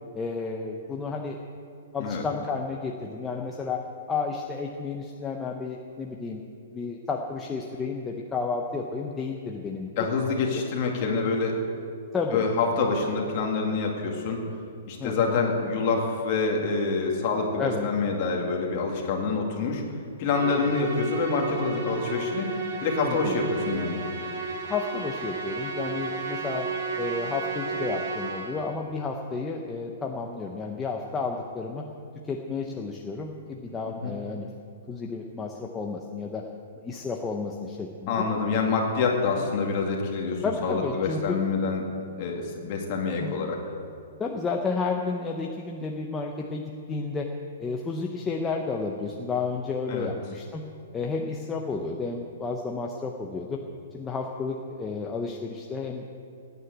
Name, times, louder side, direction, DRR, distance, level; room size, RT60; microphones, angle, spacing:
voice 1, 0.1-1.4 1.9-3.8 4.1-6.4 6.7-9.9 10.6-10.7 12.1-12.5 15.0-15.4 17.6-17.9 20.5-20.6 23.0-23.4 24.6-26.7 27.0-31.8 32.3-34.5 34.9-36.4 36.8-38.1 40.4-41.4 43.2-43.3 44.2-47.3 47.6-50.6 50.9-53.6 53.9-56.2, left 4 dB, 10° left, 1 dB, 0.7 m, -31 dB
voice 2, 10.0-11.6 12.3-14.4 14.9-19.8 20.2-22.5 22.8-24.0 33.9-34.1 38.1-41.8 42.2-43.6 49.9-50.1, left 4 dB, 30° left, 0 dB, 2.4 m, -26 dB
Musical instrument, 20.2-28.8, right 4 dB, 40° right, 2.7 m, -33 dB
17.5 x 9.6 x 7.9 m, 2.4 s
hypercardioid pair, 175°, 0 cm